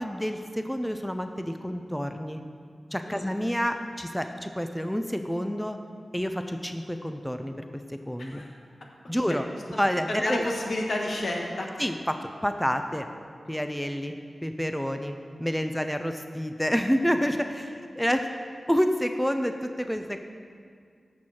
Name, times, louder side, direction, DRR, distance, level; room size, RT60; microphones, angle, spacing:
voice 1, 0.0-2.4 2.9-5.8 6.1-7.5 7.9-8.4 9.1-9.5 9.8-10.5 11.8-13.1 13.5-14.2 14.4-18.3 18.7-20.2, equal, 5° left, 6 dB, 0.4 m, -28 dB
voice 2, 8.2-8.5 8.8-8.9 10.1-11.7, left 1 dB, 75° left, 0 dB, 1.4 m, -30 dB
13.5 x 6.3 x 4.3 m, 2.2 s
wide cardioid pair, 85°, 0 cm